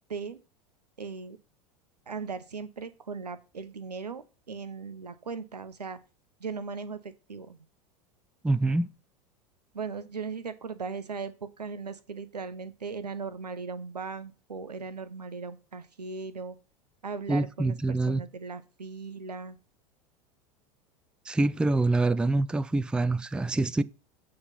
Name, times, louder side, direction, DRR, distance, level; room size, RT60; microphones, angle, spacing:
voice 1, 0.1-0.4 1.0-1.4 2.1-6.0 6.4-7.6 9.7-16.6 17.0-19.6, right 5 dB, 85° right, 0.8 m, -38 dB
voice 2, 8.4-8.9 17.3-18.2 21.3-23.8, right 2 dB, 5° right, 0.4 m, -25 dB
7.9 x 3.8 x 5.6 m
figure-of-eight pair, 85°, 20 cm